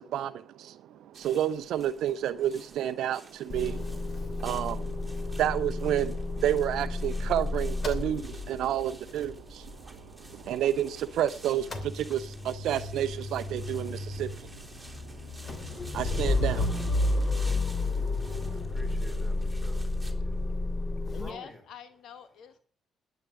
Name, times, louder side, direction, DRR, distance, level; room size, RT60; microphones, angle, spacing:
voice 1, 0.0-17.6 17.9-18.6, right 11 dB, 70° right, 0.7 m, -31 dB
sound 1, 1.1-20.1, right 2 dB, 10° right, 3.3 m, -52 dB
Motor vehicle (road) / Engine starting / Idling, 3.5-11.2 11.5-21.3, left 2 dB, 40° left, 2.9 m, -32 dB
voice 2, 17.4-19.9 20.1-20.4 21.1-21.6, left 1 dB, 15° left, 5.0 m, -50 dB
voice 3, 21.1-22.6, left 8 dB, 65° left, 1.2 m, -45 dB
12.0 x 9.0 x 7.0 m
hypercardioid pair, 50°, 0 cm